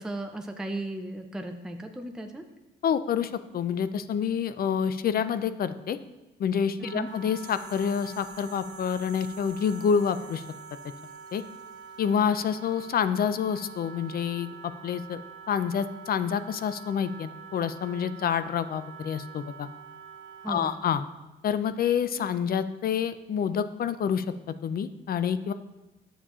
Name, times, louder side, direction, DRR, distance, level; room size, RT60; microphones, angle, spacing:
voice 1, 0.0-2.4 6.8-7.1 20.4-20.7, right 1 dB, 5° right, 5 dB, 0.5 m, -35 dB
voice 2, 2.8-6.0 6.4-10.4 11.3-11.4 12.0-15.2 15.5-19.7 20.5-21.0 21.4-24.2 24.6-25.5, left 7 dB, 50° left, 12 dB, 0.4 m, -28 dB
Wind instrument woodwind instrument, 6.8-20.9, right 6 dB, 70° right, 0.4 m, -46 dB
sound 1, 7.1-12.7 13.0-13.1, right 2 dB, 20° right, 1.3 m, -53 dB
9.8 x 7.1 x 2.4 m, 1.1 s
cardioid pair, 90°, 20 cm